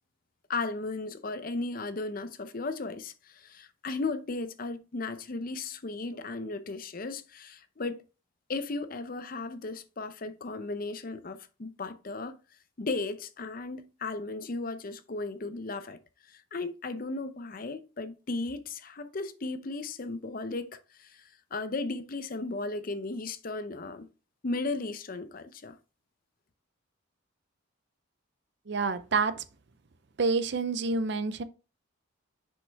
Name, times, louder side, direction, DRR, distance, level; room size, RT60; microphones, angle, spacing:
voice 1, 0.5-8.0 8.5-12.4 12.8-16.0 16.3-24.1 24.4-25.8, left 3 dB, 40° left, 0.6 m, -35 dB
voice 2, 28.7-29.4 30.2-31.4, right 4 dB, 55° right, 0.5 m, -28 dB
6.6 x 5.2 x 3.4 m
head